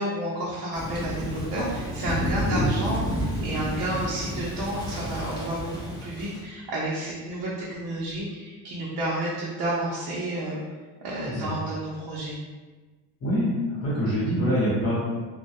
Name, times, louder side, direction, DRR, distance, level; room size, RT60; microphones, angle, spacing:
voice 1, 0.0-10.6 11.0-12.4, right 1 dB, 55° right, -6 dB, 0.6 m, -31 dB
Thunder / Rain, 0.7-6.4, equal, 10° left, 0.3 m, -31 dB
voice 2, 13.2-14.9, equal, 30° left, -9 dB, 0.9 m, -25 dB
2.2 x 2.1 x 2.7 m, 1.3 s
cardioid pair, 130°, 46 cm